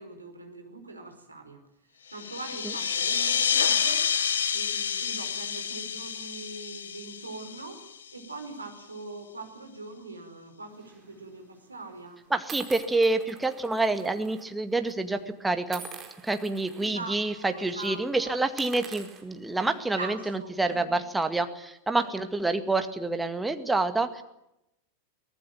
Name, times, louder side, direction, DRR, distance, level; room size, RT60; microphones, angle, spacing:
voice 1, 0.0-1.6 2.1-4.1 4.5-7.8 8.1-12.2 16.8-18.4 19.7-20.9 21.9-22.1, right 3 dB, 80° right, 5 dB, 4.8 m, -42 dB
sound 1, 2.1-8.3, left 7 dB, 65° left, 1.4 m, -28 dB
sound 2, 10.8-11.1 11.9-12.0 12.5-14.4 14.7-14.9 15.7-16.9 17.3-17.5 17.8-17.9 18.4-20.0, right 7 dB, 25° right, 4.5 m, -45 dB
voice 2, 12.3-15.8 16.2-24.2, right 2 dB, 5° right, 7 dB, 2.0 m, -28 dB
24.0 x 18.5 x 9.1 m, 0.84 s
figure-of-eight pair, 90°, 0 cm